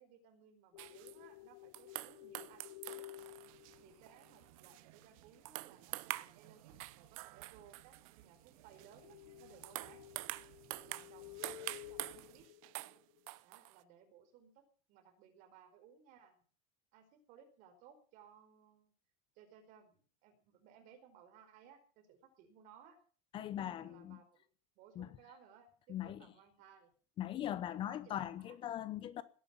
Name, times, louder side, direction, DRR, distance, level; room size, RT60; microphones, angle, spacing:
voice 1, 0.0-3.1 3.8-10.1 10.9-12.5 13.4-16.4 16.9-18.9 19.3-23.0 23.6-24.4 24.7-26.9 27.7-28.6, right 8 dB, 45° right, 4.9 m, -62 dB
sound 1, 0.7-4.4 8.9-13.3, left 17 dB, 70° left, 1.0 m, -54 dB
sound 2, 0.8-1.2 1.7-5.2 5.4-6.4 6.8-8.1 8.8-8.9 9.4-13.0 13.3-13.8, right 21 dB, 65° right, 0.9 m, -46 dB
sound 3, 3.2-12.5, right 14 dB, 85° right, 2.0 m, -63 dB
voice 2, 23.3-24.2 25.0-25.1 25.9-26.3 27.2-29.2, left 11 dB, 30° left, 0.8 m, -40 dB
18.5 x 10.5 x 7.3 m
cardioid pair, 175°, 18 cm